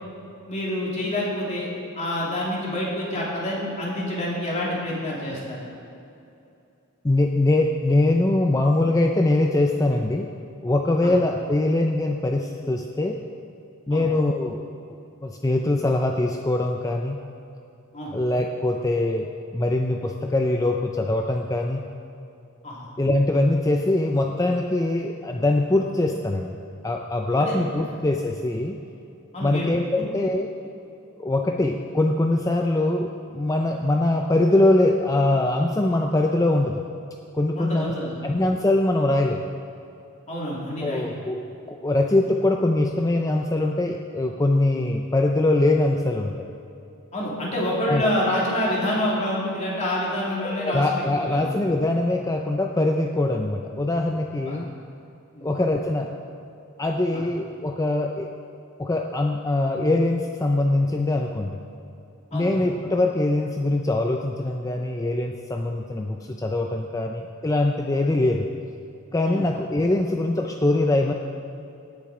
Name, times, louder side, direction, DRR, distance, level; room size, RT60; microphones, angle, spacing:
voice 1, 0.5-1.7 2.0-5.6 11.0-11.1 13.9-14.0 17.9-18.1 22.6-22.9 27.4-27.6 29.3-29.7 30.0-30.1 37.5-38.3 40.3-41.0 47.1-51.5 54.5-54.6 55.3-55.5 57.1-57.2 62.3-62.5 69.2-69.5, left 1 dB, 35° left, -5 dB, 2.9 m, -27 dB
voice 2, 7.0-10.3 10.6-13.2 13.9-14.6 15.2-17.2 18.1-19.3 19.5-21.9 23.0-26.6 26.8-28.8 29.4-30.5 31.2-36.8 37.3-37.9 38.2-39.4 40.8-41.4 41.7-46.5 47.9-48.1 50.4-54.7 55.4-56.1 56.8-58.3 58.8-61.6 62.3-68.5 69.1-71.1, left 2 dB, 15° left, 2 dB, 0.5 m, -22 dB
17.5 x 7.4 x 4.9 m, 2.7 s
head